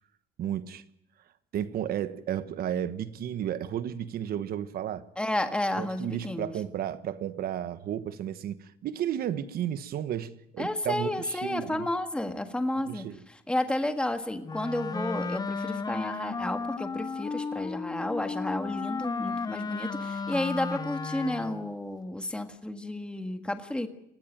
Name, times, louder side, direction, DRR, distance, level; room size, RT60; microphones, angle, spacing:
voice 1, 0.4-0.8 1.5-5.1 5.8-11.9 12.9-13.2, right 10 dB, 60° right, 1.3 m, -33 dB
voice 2, 5.2-6.5 10.6-23.9, left 1 dB, 5° left, 1.8 m, -32 dB
Wind instrument woodwind instrument, 14.4-21.7, left 4 dB, 25° left, 0.8 m, -34 dB
20.5 x 15.5 x 9.2 m
cardioid pair, 110°, 17 cm